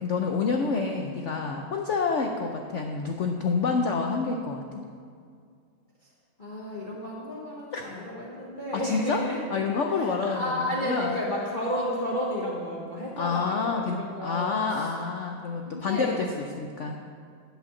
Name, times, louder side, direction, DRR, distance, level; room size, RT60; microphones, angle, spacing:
voice 1, 0.0-4.6 7.7-7.8 8.7-9.2 9.5-11.2 13.2-17.0, left 4 dB, 80° left, 3 dB, 0.6 m, -28 dB
voice 2, 6.4-14.9 15.7-16.2, equal, 30° left, -4 dB, 1.2 m, -32 dB
11.0 x 5.6 x 7.0 m, 2.2 s
omnidirectional pair, 2.0 m